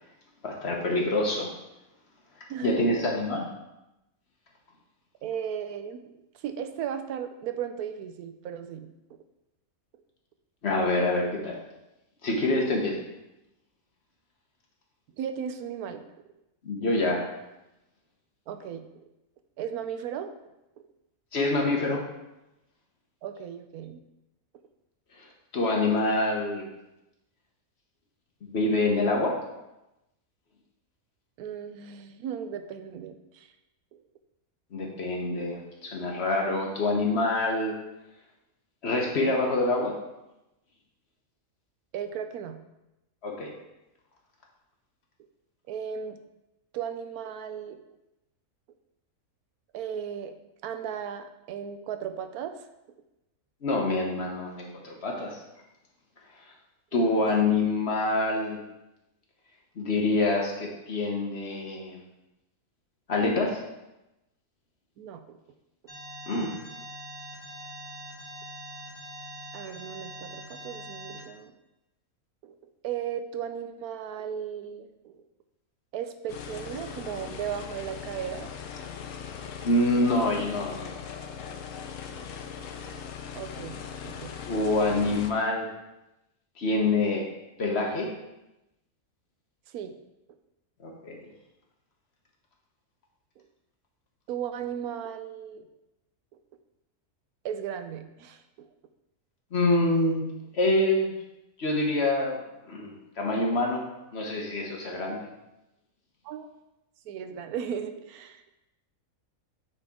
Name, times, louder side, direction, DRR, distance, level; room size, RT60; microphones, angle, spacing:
voice 1, 0.4-1.5 2.6-3.4 10.6-11.6 12.2-13.0 16.6-17.3 21.3-22.0 25.5-26.6 28.4-29.3 34.7-37.7 38.8-39.9 43.2-43.5 53.6-55.4 56.9-58.6 59.8-62.0 63.1-63.6 66.3-66.5 79.6-80.9 84.5-85.7 86.6-87.2 87.6-88.1 90.8-91.2 99.5-100.2 100.5-101.1 101.6-102.3 102.7-103.8 104.1-105.2, left 2 dB, 50° left, 0 dB, 1.3 m, -26 dB
voice 2, 2.5-2.9 5.2-6.0 6.3-8.9 15.2-16.1 18.5-18.9 19.6-20.3 23.2-24.0 31.4-33.5 33.9-34.0 41.9-42.6 45.7-46.2 46.7-47.8 49.7-50.4 50.6-52.7 56.9-57.3 65.0-65.4 69.5-71.5 72.4-72.6 72.8-75.2 75.9-78.5 83.4-84.4 89.7-90.0 94.3-95.7 97.4-98.7 106.2-106.6 107.1-108.4, right 8 dB, 85° right, 8 dB, 1.1 m, -36 dB
Alarm, 65.9-71.2, right 1 dB, 30° left, 2.9 m, -43 dB
sound 1, 76.3-85.3, left 7 dB, 65° left, 0.9 m, -40 dB
8.8 x 4.2 x 3.6 m, 0.93 s
omnidirectional pair, 1.5 m